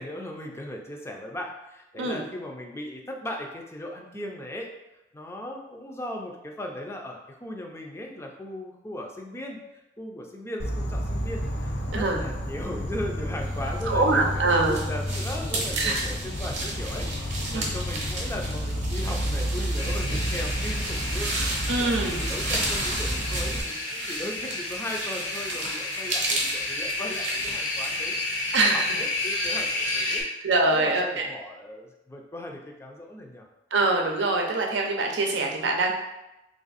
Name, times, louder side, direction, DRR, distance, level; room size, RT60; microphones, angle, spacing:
voice 1, 0.0-4.7 5.1-9.6 10.0-30.2 30.7-33.5, left 1 dB, 15° left, 1 dB, 0.4 m, -38 dB
Insect, 10.6-23.6, equal, 65° left, 0.6 m, -31 dB
sound 1, 13.9-29.0, right 2 dB, 40° right, 0.8 m, -34 dB
voice 2, 13.9-14.8 15.8-16.0 17.5-17.7 21.7-22.2 28.5-29.0 30.0-30.1 30.4-31.3 33.7-35.9, right 2 dB, 80° right, 1 dB, 0.6 m, -24 dB
sound 2, 19.8-30.2, left 2 dB, 85° left, 0.9 m, -31 dB
3.3 x 2.5 x 4.0 m, 0.95 s
head